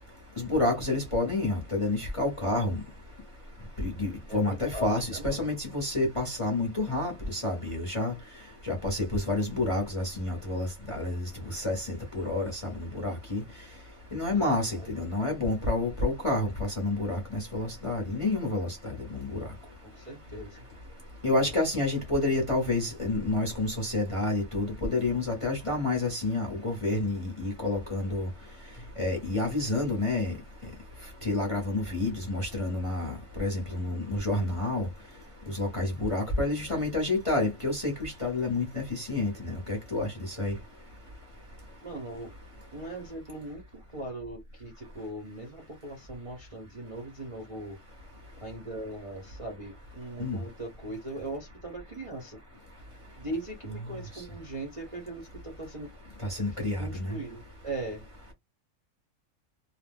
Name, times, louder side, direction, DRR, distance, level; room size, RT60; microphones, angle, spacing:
voice 1, 0.4-2.8 3.8-8.1 8.6-13.4 14.1-19.4 21.2-28.3 29.0-30.3 31.2-34.9 35.5-40.6 50.2-50.4 56.3-57.1, left 2 dB, 30° left, 0.7 m, -29 dB
voice 2, 4.3-5.5 6.9-7.0 14.2-14.9 19.8-20.7 21.2-21.5 41.8-42.3 42.7-47.8 48.4-52.4 53.2-55.9 56.6-58.0, right 1 dB, 35° right, 0.6 m, -40 dB
2.5 x 2.1 x 3.4 m
omnidirectional pair, 1.6 m